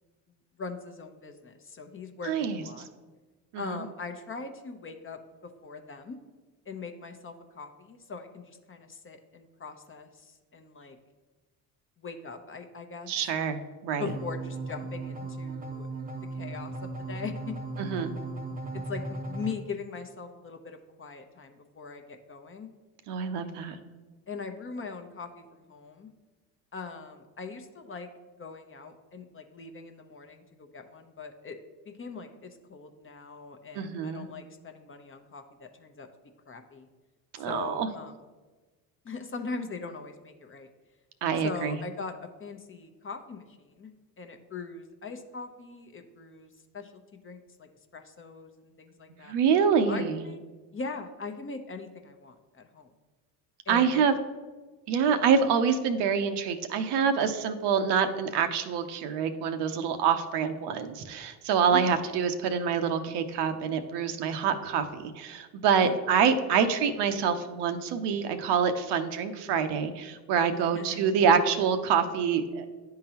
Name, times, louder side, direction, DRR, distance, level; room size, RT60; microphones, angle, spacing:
voice 1, 0.6-2.9 3.6-5.2 5.6-6.2 6.7-11.0 12.0-13.1 14.0-15.9 16.3-17.6 18.7-22.7 24.3-26.1 26.7-28.1 28.4-31.6 31.9-36.1 36.5-36.9 37.5-38.1 39.0-40.7 41.4-43.9 44.2-49.3 49.9-50.4 50.7-52.9 53.7-54.2 61.7-62.0 65.8-66.0 70.5-71.1, left 4 dB, 30° left, 6 dB, 0.7 m, -41 dB
voice 2, 2.3-2.6 3.5-3.8 13.1-13.6 13.8-14.1 17.8-18.1 23.1-23.8 33.7-34.2 37.3-37.9 41.2-41.8 49.3-50.2 53.7-54.1 54.9-72.7, right 6 dB, 70° right, 8 dB, 0.7 m, -26 dB
sound 1, 14.1-19.5, right 2 dB, 20° right, 0.6 m, -37 dB
10.0 x 3.8 x 2.9 m, 1.3 s
supercardioid pair, 70°, 43 cm